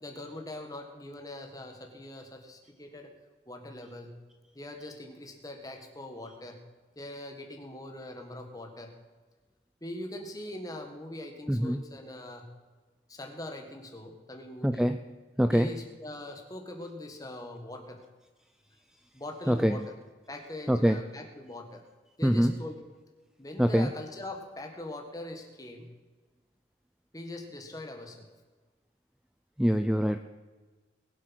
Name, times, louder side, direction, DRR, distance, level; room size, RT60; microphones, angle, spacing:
voice 1, 0.0-3.1 3.5-4.2 4.5-6.6 7.0-8.9 9.8-12.5 13.1-14.9 15.5-18.0 19.1-20.0 20.3-21.8 22.2-22.8 23.4-25.9 27.1-28.3, left 1 dB, 20° left, 4 dB, 1.8 m, -42 dB
voice 2, 11.5-11.8 14.6-15.0 15.4-15.7 19.5-19.8 20.7-21.0 22.2-22.5 23.6-23.9 29.6-30.2, equal, 5° right, 8 dB, 0.4 m, -24 dB
21.0 x 7.8 x 6.2 m, 1.3 s
head